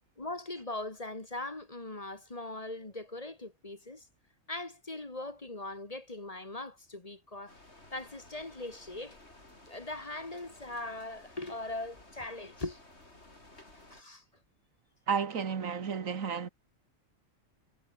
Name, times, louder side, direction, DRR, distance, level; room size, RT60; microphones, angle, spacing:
voice 1, 0.2-4.1 4.5-7.6 7.9-9.2 9.7-12.8 13.9-14.2, left 2 dB, 30° left, 1.9 m, -40 dB
sound 1, 7.5-14.0, left 2 dB, 55° left, 6.1 m, -56 dB
voice 2, 15.1-16.5, right 6 dB, 85° right, 2.0 m, -32 dB
omnidirectional pair, 1.4 m